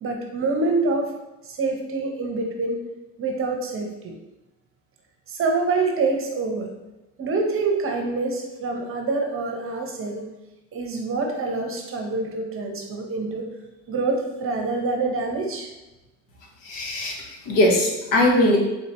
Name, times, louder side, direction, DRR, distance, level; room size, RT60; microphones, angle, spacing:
voice 1, 0.0-1.1 1.5-2.8 3.2-4.1 5.3-6.7 7.2-10.2 10.7-13.5 13.9-15.7, right 3 dB, 35° right, 2 dB, 0.8 m, -26 dB
voice 2, 16.6-18.6, left 1 dB, 60° left, 0 dB, 1.2 m, -20 dB
4.3 x 3.8 x 3.0 m, 1.0 s
supercardioid pair, 95°, 38 cm